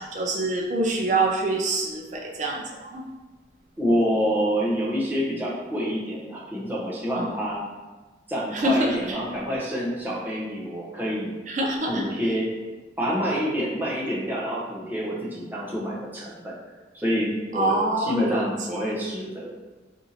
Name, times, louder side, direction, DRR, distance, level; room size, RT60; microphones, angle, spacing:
voice 1, 0.0-3.1 7.1-7.3 8.5-9.2 11.5-12.1 17.5-18.4, right 2 dB, 40° right, 0 dB, 0.4 m, -25 dB
voice 2, 3.8-7.6 8.3-11.3 11.9-12.5 13.0-16.5 16.9-19.6, equal, 10° right, -5 dB, 0.8 m, -27 dB
4.3 x 2.7 x 4.1 m, 1.2 s
head